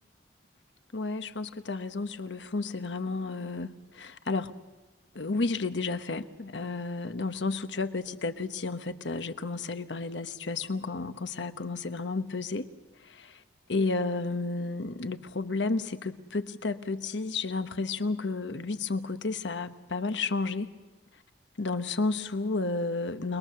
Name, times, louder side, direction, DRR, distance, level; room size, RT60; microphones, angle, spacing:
voice 1, 0.9-4.5 5.1-12.7 13.1-13.4 13.7-20.7 21.6-23.4, left 3 dB, 85° left, 10 dB, 1.1 m, -32 dB
28.5 x 21.0 x 6.8 m, 1.3 s
head